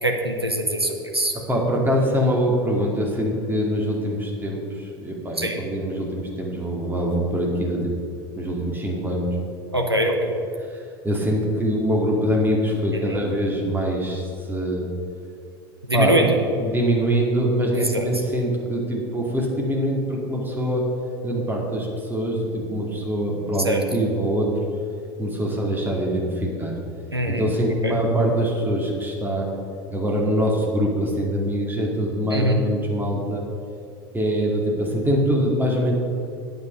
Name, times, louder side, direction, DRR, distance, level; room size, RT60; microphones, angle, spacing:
voice 1, 0.0-1.3 5.4-5.6 9.7-10.4 12.9-13.2 15.9-16.4 17.7-18.1 23.6-23.8 27.1-27.5 27.8-28.0 32.3-32.6, right 1 dB, 90° right, 2 dB, 0.9 m, -23 dB
voice 2, 1.5-7.9 8.4-9.3 10.6-14.9 15.9-16.3 16.6-20.9 21.2-24.6 25.2-26.7 27.3-29.5 29.9-33.4 34.1-35.9, equal, 15° right, -1 dB, 2.3 m, -24 dB
9.4 x 7.8 x 5.4 m, 2.5 s
figure-of-eight pair, 75°, 13 cm